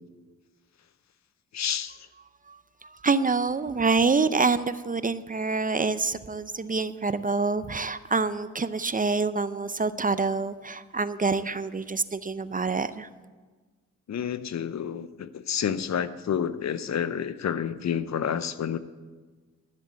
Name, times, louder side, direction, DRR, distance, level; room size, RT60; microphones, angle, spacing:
voice 1, 1.5-2.1 14.1-18.8, left 8 dB, 55° left, 14 dB, 0.7 m, -29 dB
voice 2, 2.5-13.1, right 4 dB, 25° right, 14 dB, 0.6 m, -26 dB
13.5 x 7.6 x 7.6 m, 1.4 s
cardioid pair, 60°, 33 cm